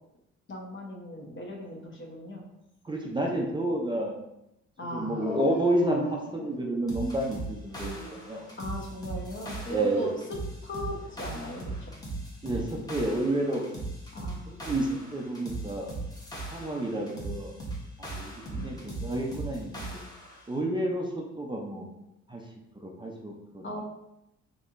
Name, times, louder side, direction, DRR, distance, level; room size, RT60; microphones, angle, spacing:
voice 1, 0.5-2.5 4.8-5.4 8.6-10.1 10.6-11.9 14.1-14.6 18.5-18.8 23.6-23.8, left 1 dB, 40° left, 0 dB, 0.9 m, -38 dB
voice 2, 2.8-4.1 4.9-8.5 9.7-10.1 12.4-13.6 14.5-15.9 16.5-17.5 18.0-19.9 20.5-21.9 22.3-22.4 22.8-23.8, right 1 dB, 15° right, -1 dB, 0.5 m, -30 dB
Dog, 5.2-7.1 7.7-8.5 10.8-11.6, right 2 dB, 90° left, 1.2 m, -38 dB
sound 1, 6.9-20.4, right 2 dB, 10° left, 0.9 m, -39 dB
4.2 x 2.9 x 2.5 m, 0.87 s
cardioid pair, 90°, 30 cm